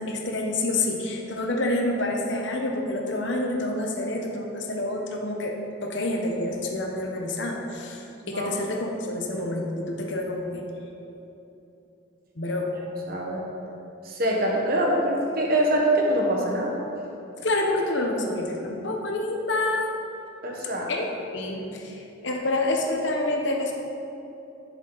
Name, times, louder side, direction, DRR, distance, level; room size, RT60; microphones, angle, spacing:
voice 1, 0.0-5.5 5.8-10.6 12.4-12.7 17.4-19.8 20.9-23.7, left 2 dB, 60° left, 1 dB, 1.0 m, -28 dB
voice 2, 13.1-13.4 14.0-16.7 20.4-20.9, right 1 dB, 45° right, -1 dB, 1.4 m, -24 dB
10.5 x 7.1 x 4.1 m, 2.9 s
head